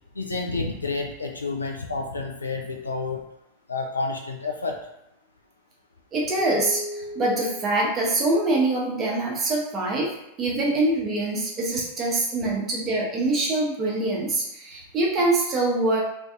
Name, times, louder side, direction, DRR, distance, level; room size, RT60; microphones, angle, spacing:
voice 1, 0.1-3.2 3.7-4.8, left 3 dB, 80° left, 1 dB, 0.4 m, -29 dB
voice 2, 6.1-10.1 10.4-16.0, right 2 dB, 25° right, -3 dB, 0.6 m, -24 dB
sound 1, 6.4-8.9, left 1 dB, 40° left, 0.6 m, -37 dB
2.5 x 2.4 x 2.4 m, 0.82 s
figure-of-eight pair, 90°, 0 cm